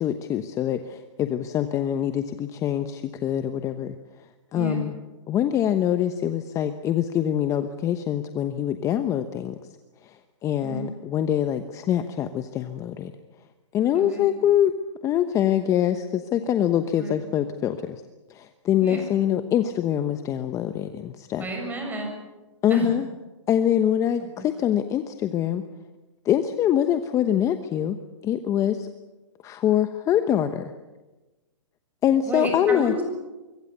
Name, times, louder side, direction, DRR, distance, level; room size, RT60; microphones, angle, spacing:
voice 1, 0.0-3.9 4.5-4.9 5.3-9.5 10.0-13.1 13.7-14.7 15.0-18.0 18.3-21.5 22.6-23.1 23.5-25.6 26.2-28.0 28.2-28.9 29.4-30.7 32.0-32.9, left 10 dB, 20° left, 9 dB, 1.0 m, -24 dB
voice 2, 4.5-4.9 10.6-10.9 13.9-14.3 17.0-17.2 18.8-19.0 21.4-22.1 22.7-22.9 24.4-24.5 32.3-33.1, right 1 dB, 10° right, 3 dB, 7.1 m, -30 dB
24.5 x 24.0 x 6.8 m, 1.1 s
hypercardioid pair, 140°, 16 cm